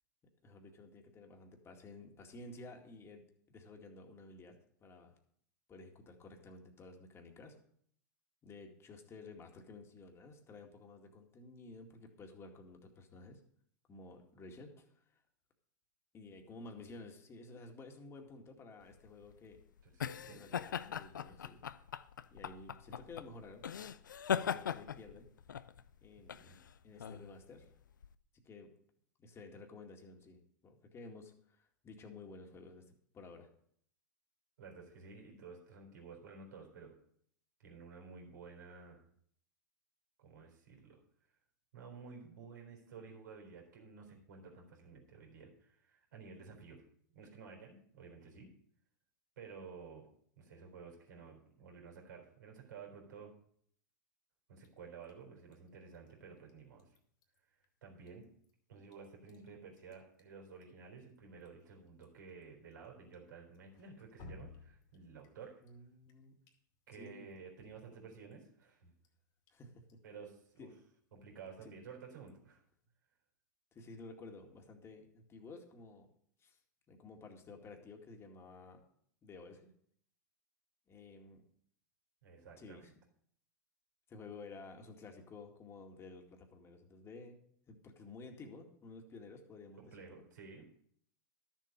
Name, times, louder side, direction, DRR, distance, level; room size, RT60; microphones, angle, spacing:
voice 1, 0.4-5.1 5.7-7.6 8.4-13.4 13.9-15.2 16.1-19.6 20.2-21.6 22.3-24.0 24.3-25.3 26.0-26.6 26.8-27.7 28.3-28.7 29.2-33.5 65.6-66.4 66.9-67.3 69.5-70.0 70.6-70.7 71.6-71.7 73.7-76.1 76.4-76.6 76.9-78.8 79.2-79.7 80.9-81.4 82.6-82.9 84.1-87.4 87.7-90.2, left 3 dB, 25° left, 3 dB, 2.1 m, -53 dB
sound 1, 18.9-28.1, left 8 dB, 85° left, 0.5 m, -40 dB
voice 2, 20.0-20.4 26.3-26.6 34.6-36.9 37.6-39.0 40.2-41.0 41.7-46.8 47.1-48.5 49.4-50.1 50.4-53.3 54.5-57.0 57.8-58.2 58.7-65.6 66.9-68.9 70.0-70.7 71.1-72.6 82.2-82.9 89.8-90.7, right 5 dB, 75° right, 1 dB, 3.9 m, -53 dB
Drip, 54.6-72.9, left 3 dB, 45° left, 2.4 m, -64 dB
12.5 x 7.4 x 5.3 m, 0.65 s
hypercardioid pair, 100°, 10 cm